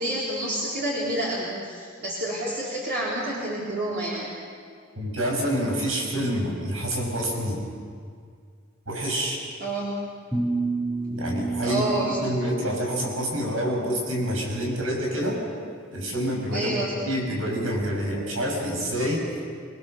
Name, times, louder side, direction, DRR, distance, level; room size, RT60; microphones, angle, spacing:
voice 1, 0.0-4.3 9.6-9.9 11.6-12.2 16.5-16.9, right 1 dB, 55° right, -6 dB, 3.9 m, -28 dB
voice 2, 4.9-7.6 8.9-9.4 11.1-15.4 15.9-16.8 17.0-19.2, equal, 90° right, 0 dB, 6.6 m, -27 dB
sound 1, 10.3-13.4, right 3 dB, 5° right, 2.1 m, -30 dB
26.0 x 20.5 x 6.8 m, 2.1 s
head